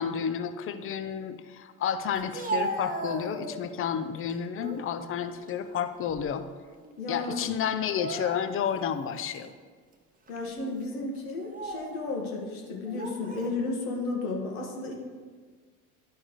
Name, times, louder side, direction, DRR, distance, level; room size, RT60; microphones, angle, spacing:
voice 1, 0.0-6.5 7.1-9.5, left 8 dB, 30° left, 9 dB, 0.5 m, -31 dB
Speech, 2.2-3.8 4.3-4.9 5.3-6.5 6.8-7.0 7.8-8.8 9.3-9.5 10.3-10.5 11.3-12.0 12.9-13.5, right 2 dB, 20° right, 0.8 m, -36 dB
voice 2, 7.0-7.5 10.3-14.9, left 3 dB, 75° left, 0 dB, 1.4 m, -33 dB
11.0 x 4.5 x 3.1 m, 1.5 s
hypercardioid pair, 65°, 43 cm